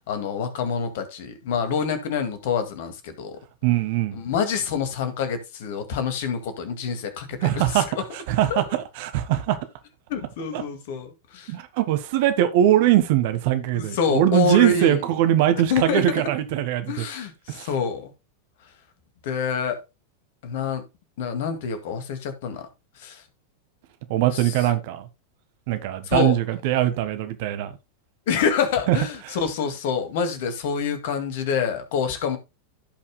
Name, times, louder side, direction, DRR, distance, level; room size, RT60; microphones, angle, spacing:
voice 1, 0.1-3.4 4.1-8.0 8.5-8.6 10.1-11.5 13.7-15.0 15.7-16.0 16.9-18.1 19.2-19.8 20.4-20.8 21.2-22.7 23.0-23.2 24.3-24.7 26.1-26.4 28.3-32.4, left 5 dB, 55° left, 2.1 m, -26 dB
voice 2, 3.6-4.2 7.4-7.9 8.3-9.6 10.5-10.6 11.5-17.0 17.5-17.7 24.1-25.1 25.7-27.7 28.9-29.0, right 12 dB, 50° right, 1.4 m, -21 dB
16.0 x 5.8 x 2.2 m
figure-of-eight pair, 90°, 0 cm